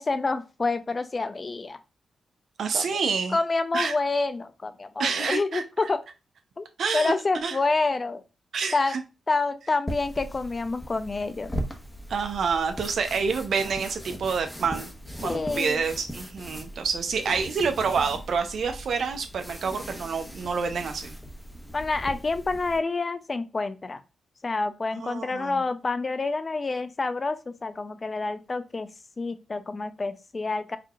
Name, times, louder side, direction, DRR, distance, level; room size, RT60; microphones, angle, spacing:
voice 1, 0.0-1.8 2.7-2.9 3.3-6.0 6.6-6.7 6.9-8.2 8.7-8.9 9.3-11.5 15.2-15.9 17.3-17.4 21.7-24.0 24.4-30.8, left 3 dB, 40° left, 0.5 m, -28 dB
voice 2, 2.6-3.4 3.7-3.9 5.0-5.6 6.8-7.1 7.4-7.6 8.5-9.0 12.1-14.9 15.2-21.2 25.0-25.6, right 5 dB, 75° right, 0.7 m, -28 dB
sound 1, 9.9-22.8, equal, 10° left, 1.2 m, -39 dB
4.9 x 2.9 x 2.4 m
supercardioid pair, 50°, 0 cm